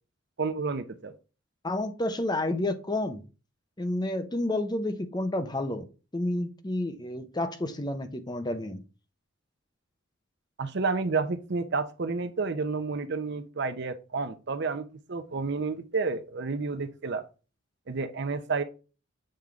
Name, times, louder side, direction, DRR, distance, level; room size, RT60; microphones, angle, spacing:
voice 1, 0.4-1.1 10.6-17.2 17.9-18.6, right 4 dB, 60° right, 0.7 m, -30 dB
voice 2, 1.6-3.2 3.8-5.9 6.1-8.8, left 1 dB, 20° left, 0.7 m, -30 dB
7.7 x 3.6 x 3.5 m
head